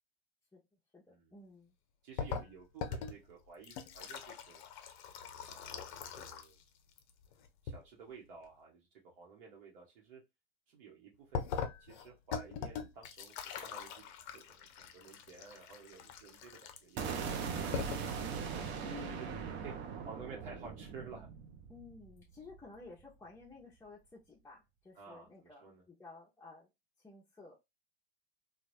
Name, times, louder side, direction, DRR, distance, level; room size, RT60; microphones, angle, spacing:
voice 1, 0.9-1.7 18.8-19.5 21.7-26.7 27.0-27.5, left 3 dB, 10° left, -5 dB, 0.8 m, -53 dB
voice 2, 2.0-4.6 5.5-6.6 7.6-10.2 10.7-11.5 11.8-14.0 14.3-18.3 18.5-19.7 20.1-21.3 25.0-25.8, right 5 dB, 55° right, -2 dB, 1.1 m, -53 dB
sound 1, 2.2-6.6 6.9-7.8 11.3-17.1 17.5-17.6 17.7-18.2, left 6 dB, 45° left, 0.6 m, -42 dB
sound 2, 17.0-23.0, right 6 dB, 35° right, 0.6 m, -40 dB
2.9 x 2.3 x 2.6 m, 0.21 s
figure-of-eight pair, 90°, 31 cm